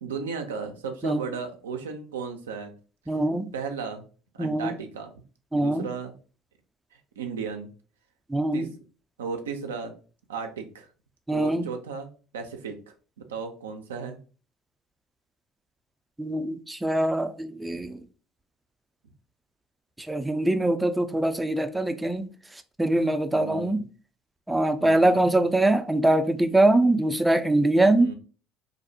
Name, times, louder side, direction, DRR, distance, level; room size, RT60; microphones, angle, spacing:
voice 1, 0.0-2.7 3.5-4.0 4.3-5.1 5.5-6.1 6.9-7.7 8.5-8.7 9.2-9.9 10.3-10.9 11.3-12.1 12.3-14.2 23.3-23.8 24.8-25.2 28.0-28.1, right 5 dB, 90° right, 0.3 m, -35 dB
voice 2, 3.1-3.5 4.4-4.7 5.5-5.9 8.3-8.7 11.3-11.7 16.2-18.0 20.1-22.3 22.8-23.8 24.5-28.1, right 1 dB, 10° right, 0.3 m, -23 dB
2.4 x 2.0 x 2.6 m
hypercardioid pair, 70°, 0 cm